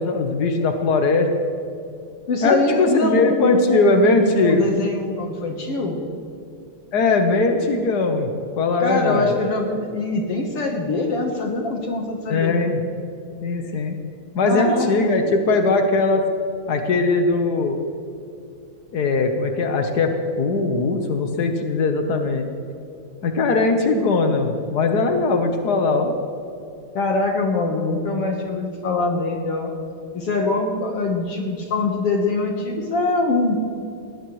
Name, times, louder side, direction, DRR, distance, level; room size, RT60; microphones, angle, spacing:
voice 1, 0.0-1.3 2.4-4.7 6.9-8.3 8.6-9.3 12.3-12.8 13.4-14.0 14.3-16.2 16.7-17.8 18.9-22.5 23.2-26.1, left 3 dB, 90° left, 5 dB, 0.8 m, -20 dB
voice 2, 2.3-6.0 8.8-12.5 14.4-15.2 27.0-29.7 30.1-33.6, left 3 dB, 55° left, 1 dB, 2.0 m, -23 dB
19.5 x 19.0 x 3.2 m, 2.6 s
omnidirectional pair, 3.5 m